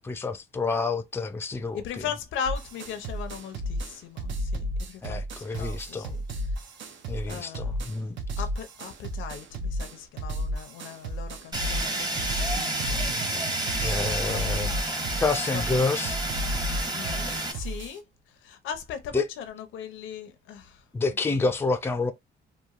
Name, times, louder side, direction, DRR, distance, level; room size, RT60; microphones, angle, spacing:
voice 1, 0.0-2.0 5.0-6.1 7.1-8.2 13.8-14.7 15.2-16.2 19.1-19.2 20.9-22.1, left 3 dB, 10° left, 0.4 m, -28 dB
voice 2, 1.7-5.2 5.5-6.5 7.3-7.8 8.4-13.7 14.3-15.0 15.5-15.8 16.9-18.0 18.4-20.8 21.3-21.4, left 8 dB, 80° left, 0.5 m, -38 dB
sound 1, 2.4-17.9, right 1 dB, 75° right, 0.6 m, -33 dB
Fire, 11.5-17.5, right 1 dB, 20° right, 0.8 m, -30 dB
2.9 x 2.3 x 2.4 m
cardioid pair, 90°, 20 cm